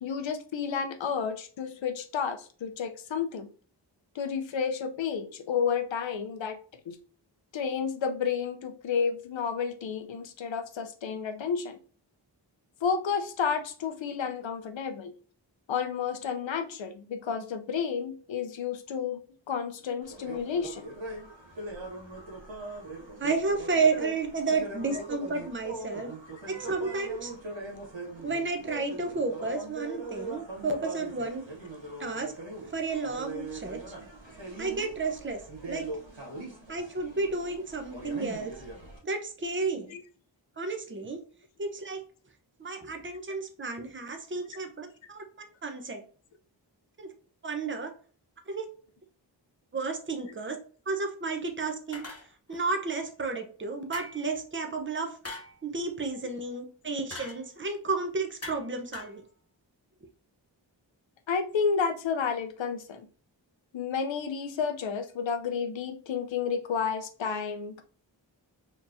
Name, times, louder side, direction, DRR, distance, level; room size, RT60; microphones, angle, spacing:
voice 1, 0.0-3.5 4.1-6.6 6.9-7.0 7.5-11.8 12.8-15.1 15.7-19.2 19.5-20.8 36.3-36.4 39.9-40.0 61.3-63.1 63.7-67.8, left 6 dB, 90° left, 8 dB, 0.6 m, -31 dB
sound 1, 20.0-39.0, right 2 dB, 80° right, 1.6 m, -41 dB
voice 2, 23.2-26.1 26.5-27.3 28.2-31.4 32.0-32.3 32.7-33.8 34.6-35.4 35.7-35.8 36.7-38.5 39.0-40.0 40.6-41.2 41.6-42.0 42.6-45.2 45.6-46.0 47.0-47.1 47.4-47.9 48.5-48.6 49.7-50.6 50.9-52.1 52.5-55.1 55.6-59.2, right 3 dB, 25° right, 5 dB, 0.8 m, -31 dB
sound 2, 51.9-52.6 53.9-54.4 55.2-55.6 57.1-57.4 58.4-58.7 58.9-59.2, left 2 dB, 35° left, 1.1 m, -41 dB
4.3 x 3.0 x 2.6 m, 0.42 s
cardioid pair, 45°, 44 cm